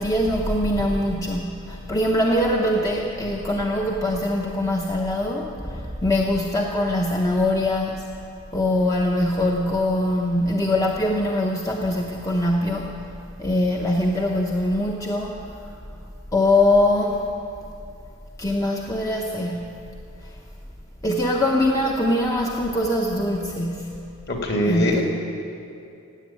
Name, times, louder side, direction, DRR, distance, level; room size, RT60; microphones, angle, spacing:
voice 1, 0.0-8.0 8.5-12.9 13.4-15.4 16.3-17.2 18.4-19.7 21.0-23.9 24.7-25.0, left 1 dB, 15° left, -1 dB, 0.8 m, -22 dB
voice 2, 24.3-25.0, left 1 dB, 45° left, 0 dB, 2.4 m, -22 dB
16.5 x 8.6 x 8.8 m, 2.6 s
head